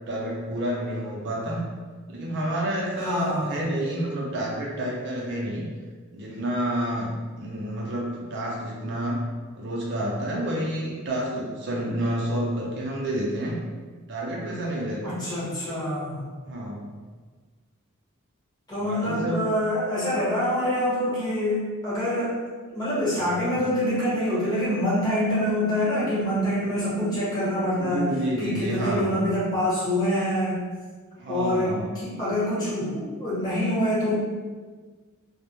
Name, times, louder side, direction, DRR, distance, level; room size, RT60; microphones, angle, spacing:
voice 1, 0.1-1.6 2.1-5.7 6.1-9.3 9.6-13.6 14.1-15.0 16.5-16.9 18.8-19.5 23.2-23.5 27.8-29.2 31.2-31.9, right 1 dB, 55° right, -3 dB, 0.4 m, -29 dB
voice 2, 3.0-3.6 15.0-16.2 18.7-22.4 22.7-28.1 28.4-30.6 31.3-34.1, left 1 dB, 20° left, -10 dB, 1.0 m, -25 dB
2.1 x 2.0 x 2.9 m, 1.4 s
head